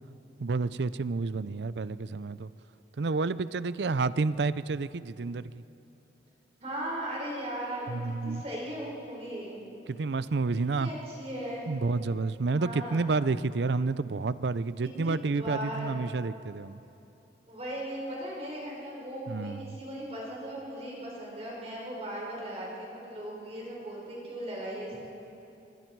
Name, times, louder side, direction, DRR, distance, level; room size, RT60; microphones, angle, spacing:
voice 1, 0.4-2.5 3.0-5.6 7.9-8.4 9.9-10.9 11.7-16.8 19.3-19.8, right 3 dB, 75° right, 16 dB, 0.5 m, -30 dB
voice 2, 6.6-8.0 8.2-9.6 10.7-11.6 12.4-13.1 14.8-16.0 17.5-25.1, equal, 35° right, -4 dB, 5.1 m, -38 dB
26.5 x 23.0 x 4.7 m, 2.9 s
head